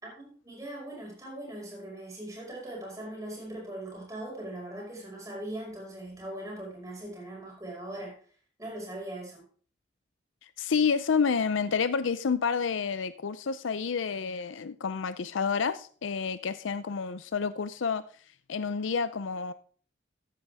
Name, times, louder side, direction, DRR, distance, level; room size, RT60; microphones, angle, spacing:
voice 1, 0.0-8.2 8.6-9.4, right 1 dB, 15° right, 5.4 m, -40 dB
voice 2, 10.6-18.0 18.5-19.5, left 5 dB, 90° left, 0.5 m, -29 dB
14.0 x 9.8 x 3.5 m
head